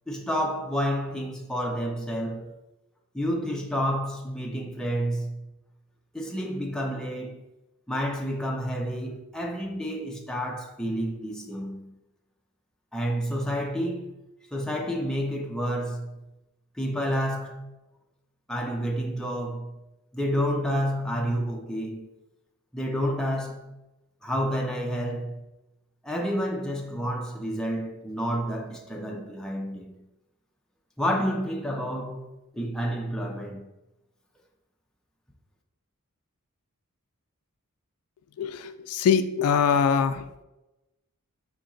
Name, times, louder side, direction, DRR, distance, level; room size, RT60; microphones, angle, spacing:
voice 1, 0.1-2.5 3.1-5.5 6.1-7.4 7.9-12.0 12.9-14.1 14.5-16.3 16.8-17.7 18.5-19.8 20.1-22.1 22.7-23.8 24.2-25.5 26.0-30.1 31.0-32.3 32.5-33.7, equal, 5° left, 0.5 m, -30 dB
voice 2, 38.4-40.2, left 7 dB, 80° left, 0.3 m, -23 dB
4.2 x 2.8 x 3.8 m
head